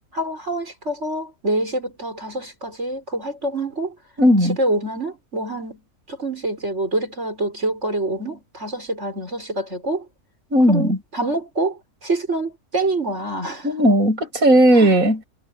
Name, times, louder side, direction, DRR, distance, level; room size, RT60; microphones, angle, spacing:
voice 1, 0.1-4.0 4.5-10.1 10.7-13.9 14.7-15.0, right 2 dB, 50° right, 7.1 m, -26 dB
voice 2, 4.2-4.6 10.5-11.0 13.6-15.2, equal, 65° right, 8.5 m, -15 dB
omnidirectional pair, 1.6 m